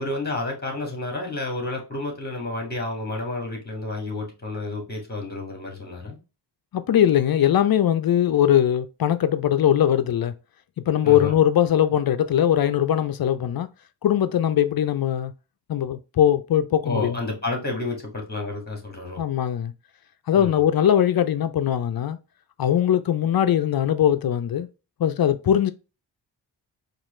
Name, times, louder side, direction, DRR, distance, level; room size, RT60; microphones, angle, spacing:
voice 1, 0.0-6.2 11.0-11.3 16.8-19.2 20.3-20.6, left 2 dB, 20° left, 2.0 m, -30 dB
voice 2, 6.7-10.3 10.9-13.7 14.0-15.3 15.7-17.2 19.2-19.7 20.3-22.2 22.6-24.7 25.0-25.7, left 10 dB, 55° left, 0.5 m, -21 dB
4.6 x 2.5 x 3.1 m
cardioid pair, 70°, 45 cm